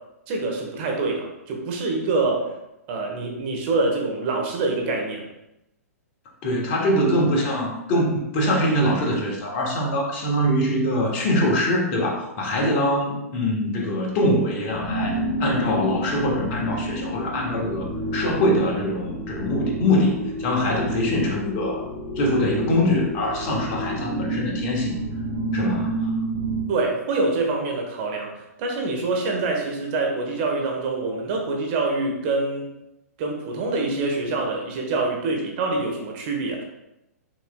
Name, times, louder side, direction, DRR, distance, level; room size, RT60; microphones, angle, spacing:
voice 1, 0.3-2.4 2.9-5.2 26.7-32.7 33.2-36.6, right 3 dB, 40° right, 1 dB, 1.2 m, -25 dB
voice 2, 6.4-17.9 18.1-21.9 22.2-24.9 25.5-26.1, left 1 dB, 40° left, -1 dB, 1.3 m, -23 dB
sound 1, 14.6-26.7, equal, 5° right, 1.1 m, -29 dB
6.1 x 3.1 x 2.3 m, 0.89 s
figure-of-eight pair, 115°, 9 cm